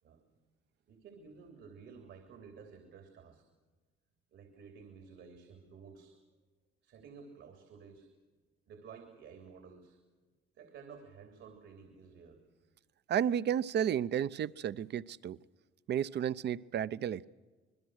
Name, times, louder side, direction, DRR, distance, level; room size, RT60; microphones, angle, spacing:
voice 1, 0.9-3.4 4.3-6.2 6.8-8.1 8.7-10.0 10.5-12.4, right 5 dB, 80° right, 4 dB, 3.2 m, -53 dB
voice 2, 13.1-15.4 15.9-17.2, right 9 dB, 60° right, 16 dB, 0.7 m, -32 dB
27.0 x 21.5 x 6.4 m, 1.3 s
cardioid pair, 90°, 20 cm